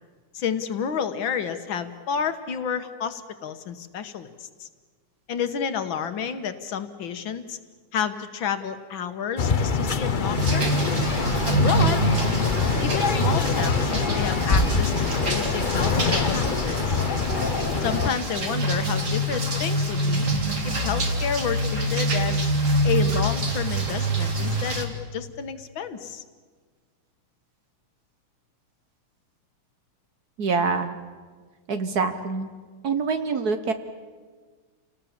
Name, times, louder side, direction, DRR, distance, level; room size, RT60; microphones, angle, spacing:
voice 1, 0.3-4.3 4.6-4.7 5.3-7.6 7.9-10.7 11.5-12.0 12.8-17.0 17.8-20.3 20.6-22.4 22.8-26.2, left 7 dB, 70° left, 9 dB, 1.8 m, -30 dB
sound 1, 9.4-18.1, left 4 dB, 45° left, 0.6 m, -24 dB
sound 2, 10.3-24.9, right 1 dB, 35° right, 2.5 m, -26 dB
voice 2, 30.4-31.0 31.7-32.5 32.8-33.7, right 4 dB, 55° right, 8 dB, 1.3 m, -25 dB
28.5 x 19.0 x 7.3 m, 1.5 s
omnidirectional pair, 2.3 m